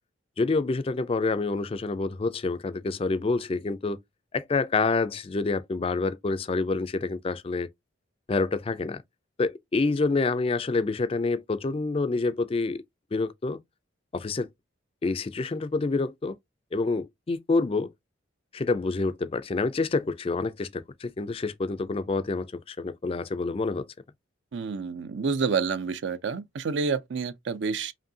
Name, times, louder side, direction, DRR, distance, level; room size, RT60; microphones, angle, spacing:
voice 1, 0.4-4.0 4.3-7.7 8.3-9.0 9.4-12.8 13.1-13.6 14.1-14.5 15.0-16.4 16.7-17.9 18.5-23.9, left 3 dB, 30° left, 0.3 m, -27 dB
voice 2, 24.5-27.9, right 5 dB, 60° right, 0.5 m, -28 dB
5.1 x 2.7 x 2.7 m
head